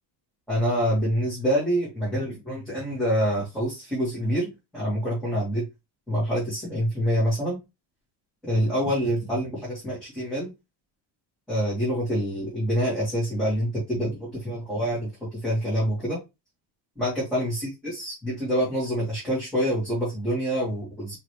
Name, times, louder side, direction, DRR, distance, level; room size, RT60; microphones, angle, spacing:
voice 1, 0.5-5.6 6.1-7.6 8.4-10.5 11.5-16.2 17.0-21.2, equal, ahead, -9 dB, 1.8 m, -26 dB
4.8 x 3.0 x 3.1 m, 0.23 s
cardioid pair, 180°, 48 cm